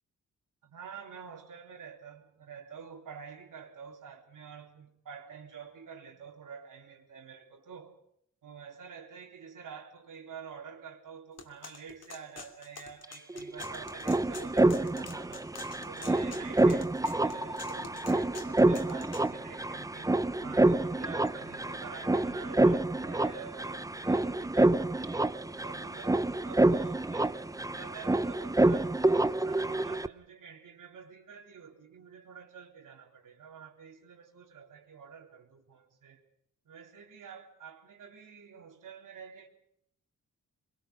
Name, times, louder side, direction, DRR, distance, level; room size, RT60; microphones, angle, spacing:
voice 1, 0.6-8.0 8.4-15.5 15.8-27.4 27.7-36.2 36.7-39.5, right 6 dB, 85° right, 3.9 m, -48 dB
sound 1, 11.4-19.3, left 5 dB, 55° left, 2.9 m, -48 dB
sound 2, 13.0-13.1 13.3-30.1, right 2 dB, 10° right, 0.8 m, -28 dB
25.0 x 23.0 x 5.2 m
wide cardioid pair, 130°, 31 cm